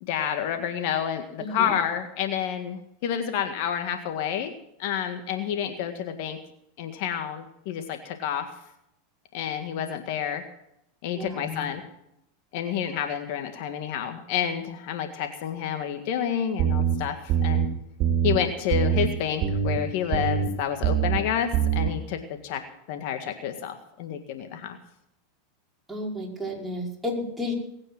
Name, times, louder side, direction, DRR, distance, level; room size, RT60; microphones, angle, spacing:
voice 1, 0.0-4.5 4.8-6.4 6.8-8.5 9.3-10.4 11.0-11.8 12.5-17.7 18.2-22.6 22.9-24.8, left 9 dB, 60° left, 7 dB, 1.8 m, -29 dB
voice 2, 1.4-1.7 11.1-11.7 25.9-27.5, left 1 dB, 5° right, -3 dB, 5.3 m, -32 dB
sound 1, 16.6-16.9 17.3-17.7 18.0-18.4 18.7-19.1 19.4-19.8 20.1-20.5 20.8-21.2 21.5-21.9, right 9 dB, 45° right, 2.9 m, -23 dB
20.5 x 9.0 x 6.0 m, 0.80 s
hypercardioid pair, 100°, 0 cm